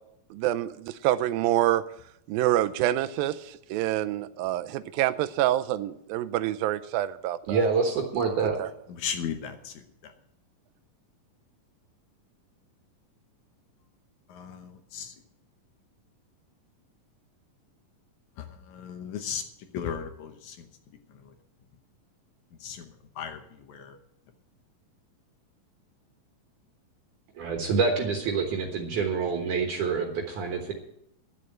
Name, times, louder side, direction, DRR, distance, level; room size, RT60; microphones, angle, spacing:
voice 1, 0.3-1.8 2.3-7.7 8.6-8.7, right 13 dB, 90° right, 12 dB, 2.4 m, -27 dB
voice 2, 7.5-8.6 27.4-30.7, right 5 dB, 65° right, 2 dB, 2.7 m, -26 dB
voice 3, 8.9-9.7 10.0-10.1 14.3-15.1 18.4-19.4 19.7-20.7 22.6-23.4 23.7-24.0, left 7 dB, 70° left, 7 dB, 2.1 m, -36 dB
11.5 x 7.8 x 8.7 m, 0.76 s
omnidirectional pair, 4.1 m